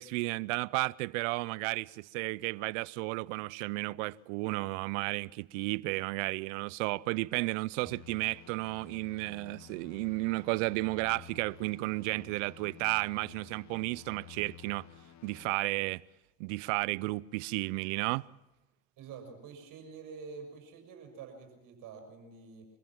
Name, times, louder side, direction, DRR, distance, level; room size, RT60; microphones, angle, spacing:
voice 1, 0.0-14.9 15.2-16.0 16.4-18.2, right 23 dB, 80° right, 0.6 m, -33 dB
sound 1, 7.9-15.5, left 11 dB, 45° left, 1.5 m, -53 dB
voice 2, 19.0-22.7, right 5 dB, 60° right, 6.2 m, -47 dB
24.5 x 15.5 x 7.4 m
hypercardioid pair, 70°, 37 cm